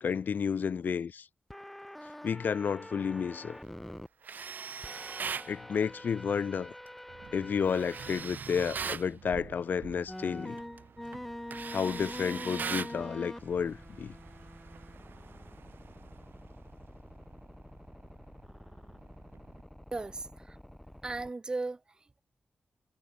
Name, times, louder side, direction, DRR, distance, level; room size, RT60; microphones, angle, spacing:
voice 1, 0.0-1.3 2.2-3.6 5.5-6.7 7.3-10.6 11.7-14.1, left 6 dB, 55° left, 1.5 m, -31 dB
sound 1, 1.5-4.1 4.8-8.2 8.8-8.9 10.1-21.3, left 1 dB, 5° left, 0.9 m, -46 dB
Tools, 4.2-5.5 7.7-9.1 10.6-10.8 11.1-13.0, right 6 dB, 55° right, 3.1 m, -38 dB
sound 2, 7.1-19.6, right 8 dB, 85° right, 7.2 m, -55 dB
voice 2, 19.9-20.6 21.0-21.8, right 3 dB, 20° right, 1.3 m, -36 dB
wide cardioid pair, 175°, 4 cm